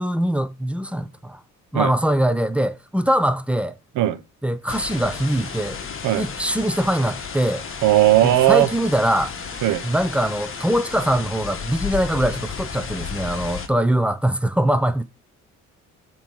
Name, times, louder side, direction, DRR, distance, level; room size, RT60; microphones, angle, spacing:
voice 1, 0.0-1.4 1.7-3.8 4.4-5.8 6.2-7.6 8.2-9.3 9.8-15.0, right 1 dB, 5° right, 0.5 m, -22 dB
sound 1, 4.7-13.7, left 6 dB, 45° left, 1.2 m, -33 dB
voice 2, 7.8-8.7 9.6-9.8, right 14 dB, 80° right, 0.8 m, -17 dB
7.4 x 3.0 x 5.4 m
cardioid pair, 90°, 30 cm